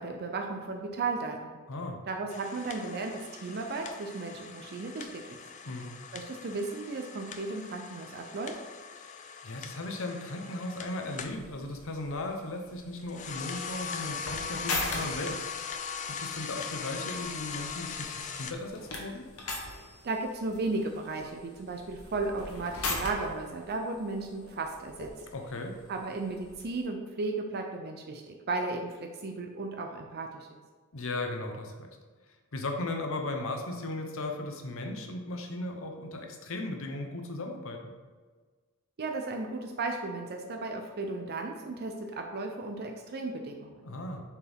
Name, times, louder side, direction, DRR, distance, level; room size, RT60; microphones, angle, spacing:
voice 1, 0.0-1.6 2.1-5.4 6.1-8.5 20.0-25.1 25.9-30.6 39.0-43.8, right 3 dB, 50° right, 3 dB, 0.5 m, -35 dB
voice 2, 1.7-2.0 5.7-5.9 9.4-15.4 16.1-19.3 25.3-25.8 30.9-31.9 32.5-37.9 43.8-44.2, left 2 dB, 65° left, 4 dB, 0.9 m, -36 dB
sound 1, 2.3-11.4 13.0-18.5, left 6 dB, 35° left, 0.4 m, -40 dB
sound 2, 11.3-26.8, left 3 dB, 85° left, 1.2 m, -41 dB
7.0 x 4.5 x 3.5 m, 1.4 s
head